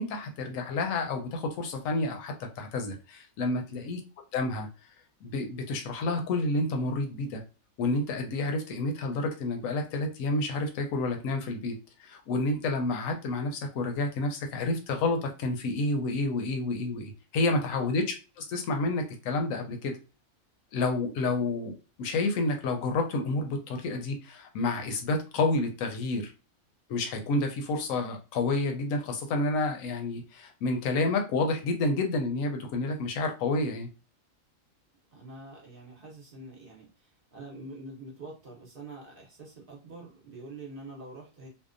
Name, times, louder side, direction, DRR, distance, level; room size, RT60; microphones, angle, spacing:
voice 1, 0.0-4.0 4.3-4.7 5.2-7.4 7.8-18.0 18.4-20.0 20.7-26.3 26.9-33.9, left 2 dB, 80° left, 4 dB, 1.0 m, -29 dB
voice 2, 35.1-41.5, right 2 dB, 50° right, -1 dB, 0.8 m, -45 dB
2.7 x 2.1 x 2.4 m, 0.32 s
omnidirectional pair, 1.4 m